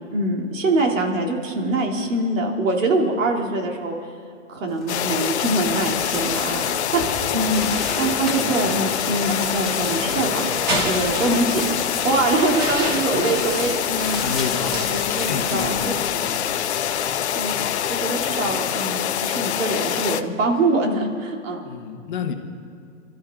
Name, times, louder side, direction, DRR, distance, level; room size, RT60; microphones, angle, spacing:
voice 1, 0.1-3.9 4.5-6.6 6.9-7.0 7.3-7.7 8.0-10.5 10.8-14.2 14.6-15.8 17.3-17.6 17.9-21.6, right 2 dB, 75° right, 1 dB, 3.1 m, -24 dB
sound 1, 4.8-17.3, left 2 dB, ahead, 2.3 m, -34 dB
sound 2, 4.9-20.2, left 10 dB, 55° left, 0.8 m, -25 dB
sound 3, 5.6-18.5, right 1 dB, 35° right, 2.9 m, -33 dB
voice 2, 14.2-16.3 21.6-22.3, left 6 dB, 40° left, 5 dB, 1.3 m, -30 dB
27.0 x 13.0 x 3.8 m, 2.4 s
hypercardioid pair, 170°, 39 cm